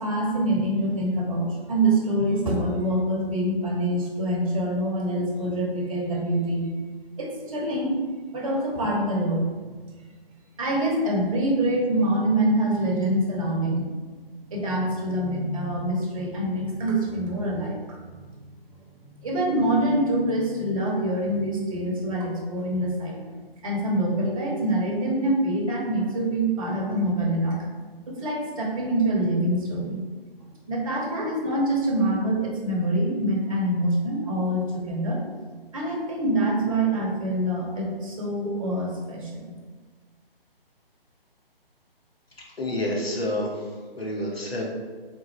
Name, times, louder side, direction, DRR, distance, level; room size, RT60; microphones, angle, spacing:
voice 1, 0.0-6.7 7.2-7.9 8.3-9.5 10.6-13.9 14.5-18.0 18.3-18.4 19.2-23.3 23.6-27.6 28.1-30.0 30.7-35.2 35.7-39.5, right 1 dB, 35° right, -1 dB, 0.9 m, -25 dB
voice 2, 42.6-43.7 44.0-44.6, left 1 dB, 80° left, -2 dB, 1.3 m, -28 dB
3.7 x 3.6 x 3.2 m, 1.5 s
figure-of-eight pair, 150°, 30 cm